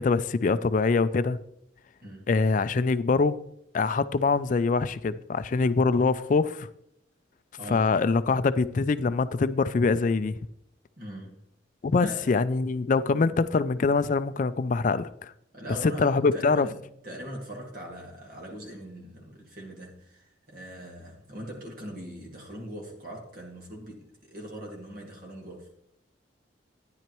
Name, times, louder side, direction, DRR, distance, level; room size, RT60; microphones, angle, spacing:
voice 1, 0.0-1.4 2.3-3.4 3.7-6.7 7.7-10.4 11.8-15.3 15.8-16.7, left 4 dB, 40° left, 0.3 m, -24 dB
voice 2, 7.6-7.9 11.0-11.4 12.0-12.3 13.1-13.4 15.5-16.8 17.0-25.7, right 1 dB, 50° right, 1.9 m, -41 dB
12.0 x 10.0 x 3.0 m
head